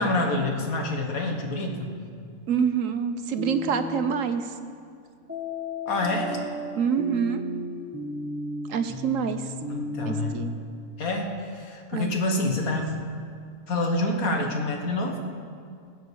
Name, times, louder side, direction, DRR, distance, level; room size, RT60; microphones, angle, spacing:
voice 1, 0.0-1.9 5.9-6.4 9.7-10.4 11.0-12.9 13.7-15.2, left 2 dB, 75° left, 2 dB, 2.0 m, -27 dB
voice 2, 2.5-4.5 6.7-7.4 8.7-9.5 10.0-10.5 11.9-12.1, right 6 dB, 65° right, 9 dB, 1.1 m, -26 dB
sound 1, 3.4-4.2 5.3-10.3, left 1 dB, 10° right, 1.1 m, -34 dB
20.0 x 7.8 x 6.9 m, 2.3 s
omnidirectional pair, 1.5 m